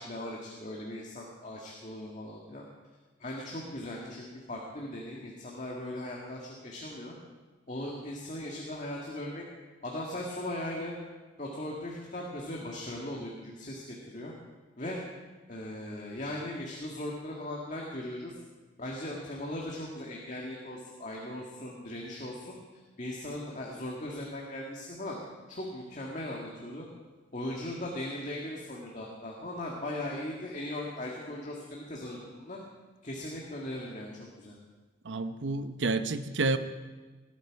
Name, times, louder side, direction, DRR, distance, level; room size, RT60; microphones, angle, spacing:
voice 1, 0.0-2.6 3.2-7.1 7.7-9.4 9.8-11.0 11.4-14.3 14.8-15.0 15.5-18.3 18.8-22.6 23.0-25.2 25.5-26.9 27.3-32.6 33.0-34.6, left 1 dB, 40° left, -2 dB, 1.9 m, -38 dB
voice 2, 35.0-36.6, right 3 dB, 80° right, 10 dB, 0.9 m, -29 dB
19.0 x 12.5 x 4.7 m, 1.3 s
head